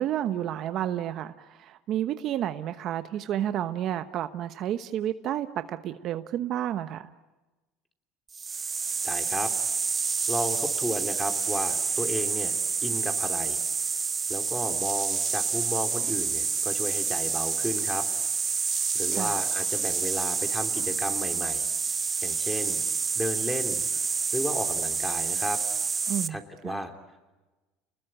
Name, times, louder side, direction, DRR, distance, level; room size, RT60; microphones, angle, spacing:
voice 1, 0.0-7.1 19.1-19.4 26.1-26.8, right 11 dB, 50° right, 10 dB, 1.0 m, -31 dB
sound 1, 8.3-26.3, right 5 dB, 25° right, 0.9 m, -28 dB
voice 2, 9.0-9.5 10.3-12.5 12.8-13.6 14.3-18.1 18.9-21.6 22.2-22.8 23.1-23.8 24.3-25.6 26.3-26.9, equal, 5° left, 6 dB, 3.3 m, -33 dB
29.0 x 20.5 x 8.9 m, 1.2 s
supercardioid pair, 115°, 0 cm